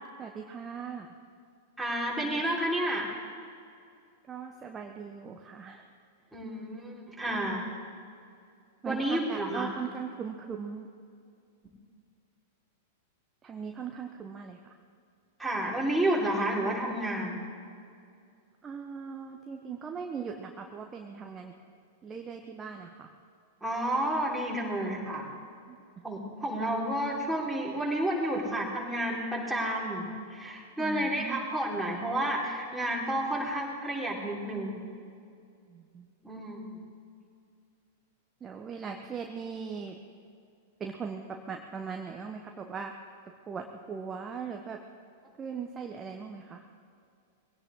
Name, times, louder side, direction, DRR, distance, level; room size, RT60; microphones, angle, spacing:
voice 1, 0.2-1.1 2.2-2.4 4.3-5.9 8.8-10.9 13.4-14.7 18.6-21.5 22.0-23.1 25.7-26.0 30.8-31.5 35.7-36.1 38.4-40.0 40.8-42.9 43.5-44.8 45.4-46.6, right 6 dB, 20° right, 3 dB, 1.0 m, -39 dB
voice 2, 1.8-3.1 6.3-7.7 8.8-9.7 15.4-17.4 23.6-25.3 26.0-34.8 36.2-36.8, right 1 dB, ahead, -5 dB, 4.3 m, -31 dB
22.0 x 17.0 x 3.8 m, 2.4 s
figure-of-eight pair, 95°, 0 cm